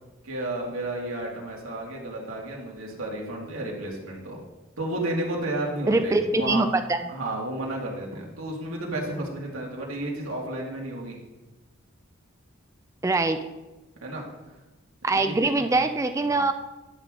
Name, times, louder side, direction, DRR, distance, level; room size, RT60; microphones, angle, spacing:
voice 1, 0.2-4.4 4.8-6.6 7.1-11.2 14.0-14.2 15.1-15.7 16.2-16.4, right 1 dB, 85° right, -2 dB, 2.4 m, -32 dB
voice 2, 5.9-7.0 13.0-13.5 15.0-16.5, right 2 dB, 15° right, 8 dB, 0.4 m, -23 dB
11.0 x 7.8 x 3.8 m, 1.1 s
head